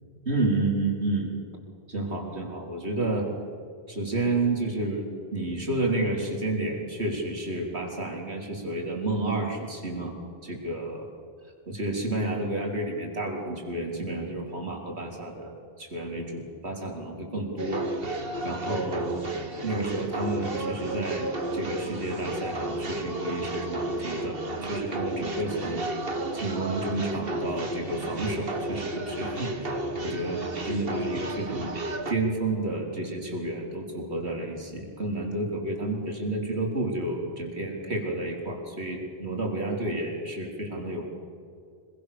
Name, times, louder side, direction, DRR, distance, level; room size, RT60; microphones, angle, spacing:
voice 1, 0.3-1.3 1.9-3.3 3.9-10.1 10.4-11.1 11.7-15.5 15.8-17.9 18.4-19.2 19.6-25.9 26.3-31.8 32.1-41.1, right 2 dB, 75° right, 0 dB, 4.2 m, -30 dB
sound 1, 17.6-32.1, right 2 dB, 60° right, 2.0 m, -32 dB
25.5 x 22.5 x 6.9 m, 2.3 s
omnidirectional pair, 1.1 m